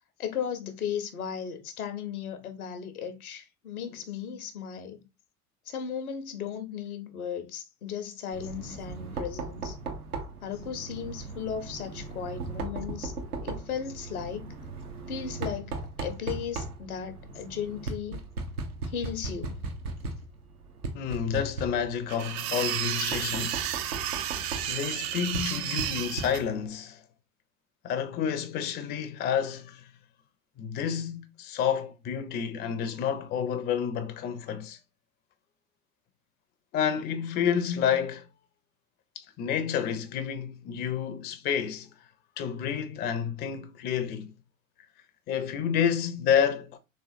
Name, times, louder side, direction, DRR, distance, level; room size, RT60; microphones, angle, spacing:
voice 1, 0.2-5.0 5.7-9.8 10.4-13.1 13.4-14.5 15.1-18.2 18.9-19.6, left 8 dB, 80° left, 0.7 m, -36 dB
Knock, 8.3-26.7, right 3 dB, 85° right, 0.7 m, -38 dB
voice 2, 20.9-23.6 24.7-27.0 27.8-29.9 30.6-34.8 36.7-38.3 39.2-41.9 42.4-44.3 45.3-46.8, left 8 dB, 25° left, 0.4 m, -29 dB
sound 1, 22.1-26.4, right 11 dB, 40° right, 0.4 m, -32 dB
3.4 x 3.1 x 2.5 m
figure-of-eight pair, 70°, 43 cm